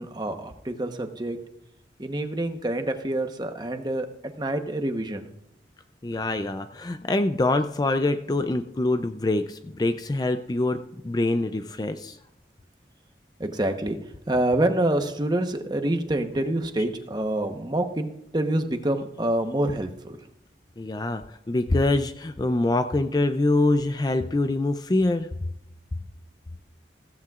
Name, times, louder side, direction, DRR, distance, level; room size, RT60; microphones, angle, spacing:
voice 1, 0.0-1.4 2.0-4.1 4.4-5.3 13.4-14.0 14.3-20.2, right 1 dB, 25° right, 6 dB, 0.9 m, -27 dB
voice 2, 6.0-12.2 20.8-25.3, left 2 dB, 20° left, 9 dB, 0.4 m, -25 dB
16.0 x 13.5 x 2.4 m, 0.80 s
head